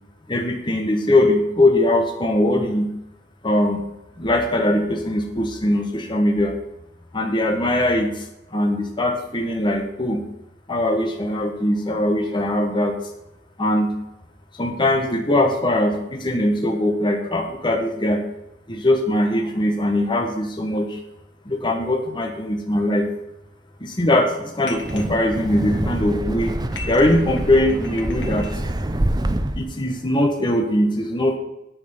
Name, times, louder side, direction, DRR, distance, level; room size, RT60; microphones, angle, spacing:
voice 1, 0.3-2.9 3.4-3.8 4.2-6.5 7.1-10.2 10.7-13.0 13.6-13.9 14.6-18.2 18.7-21.0 21.4-23.0 23.8-26.5 26.9-28.4 29.6-31.4, left 1 dB, 25° left, 2 dB, 1.2 m, -21 dB
sound 1, 24.6-25.1 25.7-26.1 26.6-28.6, left 4 dB, 70° left, 2.0 m, -39 dB
Wind, 24.7-29.8, right 1 dB, 20° right, 0.7 m, -26 dB
9.5 x 6.5 x 7.2 m, 0.89 s
head